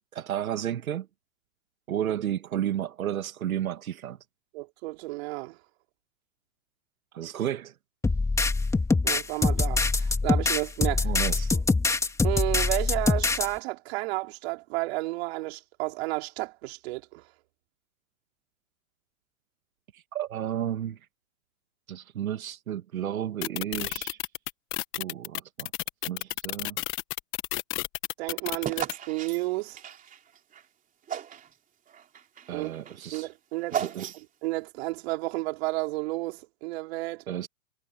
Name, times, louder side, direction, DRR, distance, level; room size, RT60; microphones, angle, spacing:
voice 1, 0.1-1.1 1.9-4.2 7.1-7.7 11.0-11.5 19.9-21.0 21.9-24.2 25.0-25.7 26.1-26.8 32.5-33.3 33.7-34.1 37.3-37.5, right 10 dB, 85° right, 2.0 m, -32 dB
voice 2, 4.5-5.6 9.0-11.1 11.5-11.6 12.2-17.2 28.2-29.8 32.5-32.7 33.1-34.0 34.4-37.2, right 22 dB, 50° right, 3.7 m, -32 dB
sound 1, 8.0-13.5, left 3 dB, 5° left, 2.7 m, -24 dB
sound 2, 23.4-28.9, left 19 dB, 30° left, 1.2 m, -31 dB
sound 3, 28.6-30.6 31.1-31.5 31.9-34.5, right 9 dB, 20° right, 3.3 m, -36 dB
hypercardioid pair, 135°, 41 cm